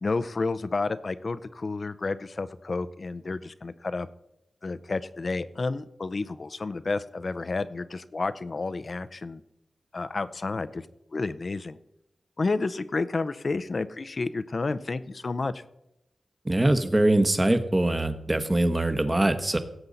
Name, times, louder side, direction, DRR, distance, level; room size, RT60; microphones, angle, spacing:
voice 1, 0.0-4.1 4.6-9.4 9.9-10.9 11.1-11.8 12.4-15.6, left 3 dB, 55° left, 13 dB, 0.6 m, -30 dB
voice 2, 16.4-19.6, right 1 dB, 25° right, 9 dB, 1.2 m, -23 dB
17.5 x 7.9 x 4.0 m, 0.85 s
cardioid pair, 55°, 0 cm